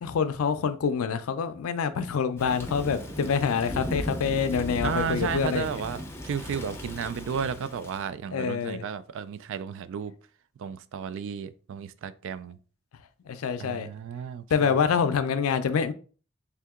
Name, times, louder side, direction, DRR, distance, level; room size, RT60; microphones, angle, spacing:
voice 1, 0.0-5.7 8.3-8.8 13.3-13.9 14.5-15.9, left 6 dB, 80° left, 0.4 m, -26 dB
Thunder / Rain, 2.4-8.1, equal, 10° left, 0.5 m, -36 dB
voice 2, 4.8-10.1 10.6-12.6 13.6-14.8, right 7 dB, 65° right, 0.3 m, -33 dB
3.5 x 2.8 x 3.5 m
head